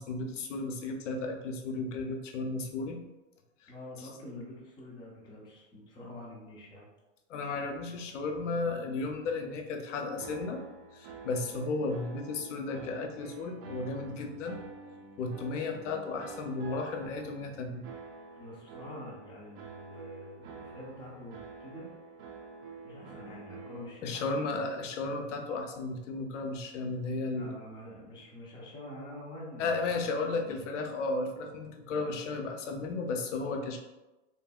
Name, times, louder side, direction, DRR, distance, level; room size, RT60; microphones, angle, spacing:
voice 1, 0.0-3.0 7.3-10.6 10.9-14.6 15.2-17.8 24.0-27.5 29.6-33.8, left 3 dB, 70° left, 3 dB, 0.6 m, -34 dB
voice 2, 3.7-6.9 18.4-21.9 22.8-24.6 27.3-30.1 30.3-30.7, left 1 dB, 10° left, -4 dB, 0.5 m, -46 dB
sound 1, 10.2-23.9, right 4 dB, 45° right, 0.5 m, -48 dB
2.7 x 2.6 x 2.3 m, 1.1 s
hypercardioid pair, 120°, 38 cm